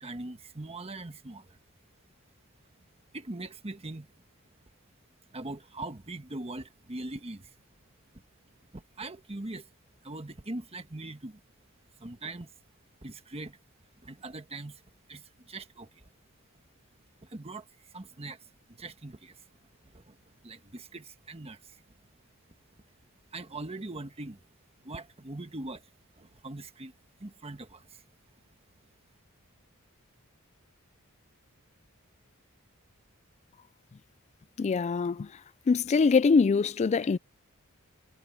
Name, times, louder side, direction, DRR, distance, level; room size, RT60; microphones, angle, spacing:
voice 1, 0.0-1.6 3.1-4.1 5.3-7.5 8.7-9.7 10.0-11.4 12.0-12.5 13.0-13.6 14.0-14.8 15.1-16.0 17.2-18.4 18.7-19.4 19.8-20.2 20.4-21.8 23.3-24.4 24.8-25.8 26.2-26.9 27.2-28.0, right 2 dB, 30° right, 1.3 m, -41 dB
voice 2, 34.6-35.3 35.7-37.2, left 4 dB, 30° left, 0.3 m, -23 dB
head